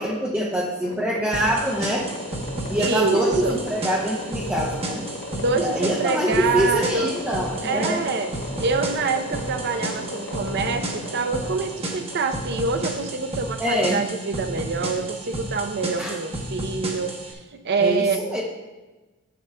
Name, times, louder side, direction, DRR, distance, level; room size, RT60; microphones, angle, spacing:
voice 1, 0.0-2.1 2.7-5.0 5.5-8.0 13.6-14.0 16.0-16.2 17.8-18.4, equal, 5° right, -5 dB, 0.6 m, -24 dB
sound 1, 0.8-13.4, left 1 dB, 50° left, 0.9 m, -36 dB
sound 2, 1.3-17.3, right 1 dB, 25° right, 1.0 m, -33 dB
voice 2, 2.8-3.6 5.4-7.1 7.6-8.3 8.6-17.1 17.6-18.2, right 4 dB, 50° right, 7 dB, 0.6 m, -26 dB
10.5 x 7.6 x 2.2 m, 1.2 s
head